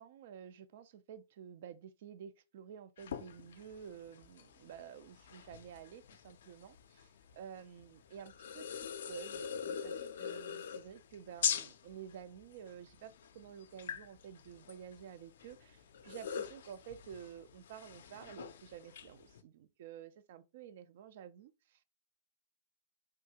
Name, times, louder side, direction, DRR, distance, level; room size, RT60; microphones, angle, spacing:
voice 1, 0.0-7.1 7.3-21.8, right 8 dB, 65° right, 0.4 m, -51 dB
sound 1, 3.0-19.4, left 8 dB, 75° left, 0.4 m, -43 dB
3.4 x 2.3 x 2.8 m
hypercardioid pair, 120°, 0 cm